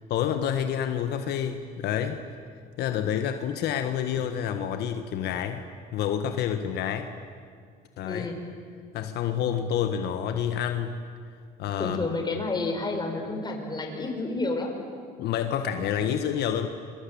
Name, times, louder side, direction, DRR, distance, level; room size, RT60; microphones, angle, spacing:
voice 1, 0.1-2.2 2.8-5.6 5.9-7.1 8.0-8.3 8.9-11.0 11.6-12.1 15.2-16.7, left 9 dB, 75° left, 7 dB, 1.6 m, -28 dB
voice 2, 8.0-8.5 11.8-14.8, left 3 dB, 25° left, 3 dB, 5.6 m, -30 dB
28.0 x 24.0 x 8.7 m, 2.1 s
cardioid pair, 110°, 17 cm